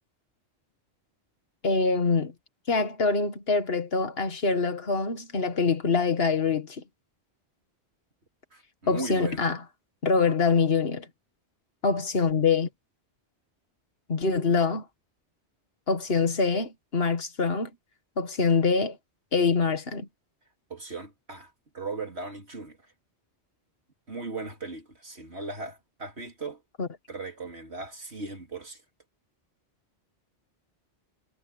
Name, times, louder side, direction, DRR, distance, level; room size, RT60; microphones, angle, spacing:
voice 1, 1.6-2.3 2.7-6.8 8.9-9.6 10.0-11.1 11.8-12.7 14.1-14.8 15.9-17.7 18.2-19.0 19.3-20.1 26.8-26.9, left 4 dB, 60° left, 1.9 m, -24 dB
voice 2, 8.5-9.5 20.7-22.9 24.1-26.6 27.1-28.8, right 3 dB, 65° right, 3.9 m, -38 dB
omnidirectional pair, 1.2 m